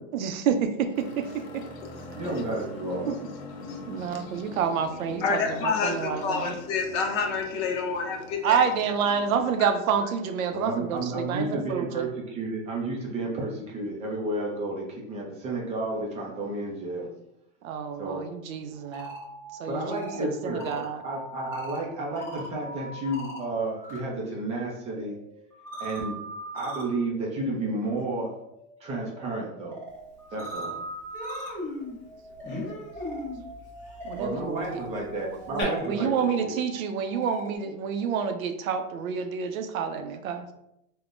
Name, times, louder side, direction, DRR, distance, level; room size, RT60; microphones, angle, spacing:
voice 1, 0.1-1.7 3.1-3.2 3.9-6.5 8.4-12.1 17.6-19.2 19.6-21.0 34.0-34.7 35.5-40.5, right 7 dB, 85° right, 7 dB, 0.6 m, -28 dB
sound 1, 0.9-9.6, left 2 dB, 80° left, 0.8 m, -43 dB
voice 2, 2.1-3.2 10.5-17.1 18.0-18.2 19.7-25.2 25.8-26.2 26.5-28.3 28.8-29.8 30.3-30.8 34.2-36.5, right 2 dB, 15° right, -2 dB, 0.3 m, -32 dB
voice 3, 5.2-8.6 9.6-9.7, left 5 dB, 50° left, 2 dB, 0.7 m, -28 dB
sound 2, 18.7-24.0 24.3-37.6, right 1 dB, 5° left, 0.8 m, -41 dB
Human voice, 30.1-30.2 30.5-30.7 31.1-35.6, left 2 dB, 25° left, 1.0 m, -38 dB
3.6 x 2.1 x 2.4 m, 0.81 s
hypercardioid pair, 130°, 40 cm